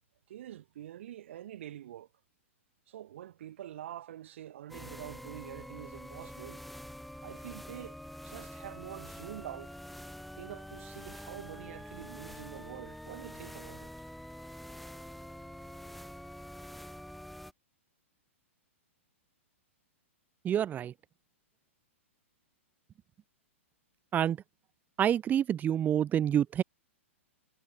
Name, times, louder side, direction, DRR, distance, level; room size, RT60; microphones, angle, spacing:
voice 1, 0.3-2.1 2.9-6.6 7.2-8.0 8.2-9.8 10.4-13.9, right 12 dB, 65° right, 5.8 m, -46 dB
sound 1, 4.7-17.5, equal, ahead, 2.6 m, -46 dB
voice 2, 20.4-20.9 24.1-24.4 25.0-26.6, right 10 dB, 25° right, 2.0 m, -27 dB
hypercardioid pair, 120°, 7 cm